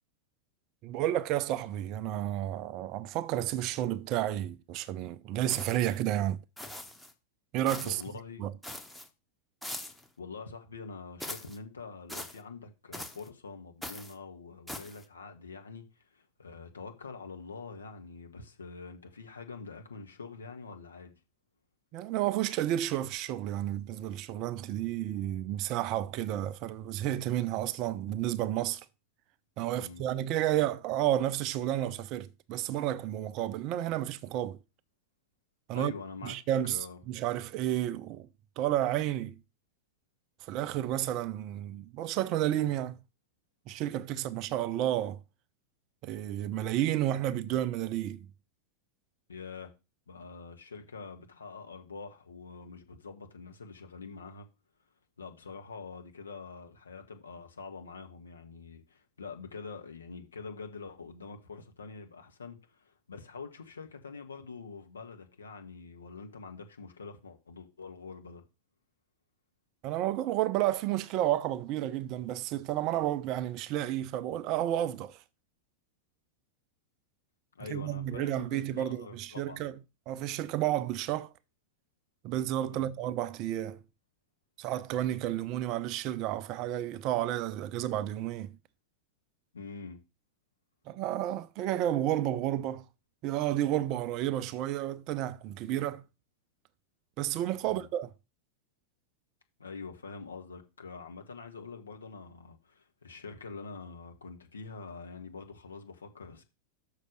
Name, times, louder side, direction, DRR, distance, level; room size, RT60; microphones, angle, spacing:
voice 1, 0.8-6.4 7.5-8.0 8.4-8.5 21.9-28.9 29.6-34.6 35.7-35.9 36.2-38.3 38.6-39.4 40.4-43.0 43.7-45.2 46.0-48.3 69.8-75.2 77.7-79.7 80.1-81.3 82.2-83.8 84.6-88.6 90.9-92.8 93.2-96.0 97.2-98.1, right 12 dB, 40° right, 0.5 m, -31 dB
sound 1, 5.5-6.0 6.6-7.1 7.7-8.1 8.6-9.1 9.6-10.1 11.2-11.6 12.1-12.4 12.9-13.3 13.8-14.1 14.7-15.0, left 1 dB, 5° left, 1.0 m, -42 dB
voice 2, 7.8-8.4 10.2-21.1 29.7-30.1 35.7-36.4 36.7-37.0 49.3-49.7 50.1-54.5 55.2-68.4 77.5-79.7 82.7-82.9 89.5-90.0 97.6-97.9 99.6-106.4, left 4 dB, 70° left, 1.4 m, -45 dB
6.5 x 5.0 x 6.4 m
figure-of-eight pair, 90°, 0 cm